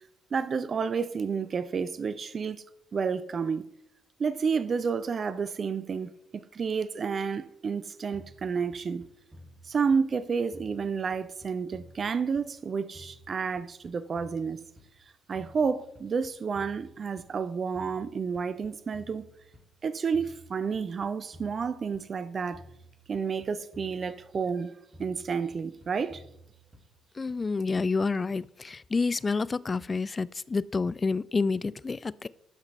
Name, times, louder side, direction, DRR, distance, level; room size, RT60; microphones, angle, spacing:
voice 1, 0.3-2.6 2.9-3.6 4.2-9.0 9.6-14.6 15.3-19.2 19.8-22.6 23.1-24.7 25.0-26.2, right 5 dB, 45° right, 0.4 m, -30 dB
sound 1, 8.1-10.2 10.5-12.7 12.9-15.1 15.3-17.4 17.7-19.7 20.1-22.2 22.5-24.6 24.9-27.1, equal, 25° right, 2.5 m, -53 dB
voice 2, 27.2-32.3, left 4 dB, 30° left, 0.3 m, -29 dB
11.5 x 5.8 x 3.2 m
figure-of-eight pair, 40°, 0 cm